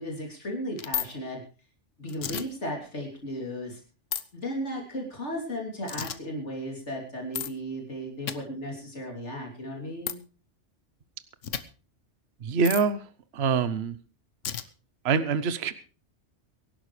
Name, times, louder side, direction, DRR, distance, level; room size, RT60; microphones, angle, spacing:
voice 1, 0.0-1.4 2.0-3.8 4.3-10.2, equal, 70° left, 0 dB, 3.6 m, -35 dB
sound 1, 0.8-1.1 2.1-2.4 4.1-4.2 5.9-6.2 7.3-7.5 8.3-8.4 10.1-10.2 11.4-11.6 12.6-12.8 14.4-14.6, left 9 dB, 90° left, 1.3 m, -32 dB
voice 2, 12.4-13.0 13.3-14.0 15.0-15.7, right 5 dB, 60° right, 14 dB, 1.2 m, -25 dB
24.0 x 11.5 x 3.2 m, 0.35 s
omnidirectional pair, 1.2 m